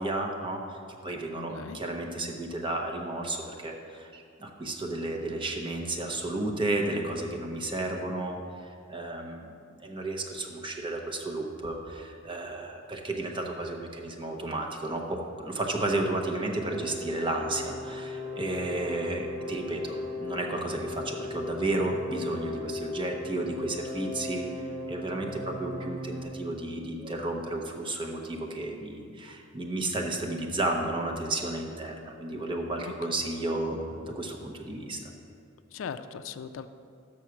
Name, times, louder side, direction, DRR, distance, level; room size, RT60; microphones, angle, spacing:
voice 1, 0.0-8.4 8.9-9.5 9.8-35.1, right 2 dB, 25° right, 2 dB, 0.8 m, -32 dB
voice 2, 1.3-1.8 32.8-32.9 35.7-36.7, left 6 dB, 75° left, 11 dB, 0.3 m, -39 dB
sound 1, 16.4-26.2, left 2 dB, 80° right, 1.5 m, -38 dB
6.3 x 6.1 x 5.8 m, 2.4 s
head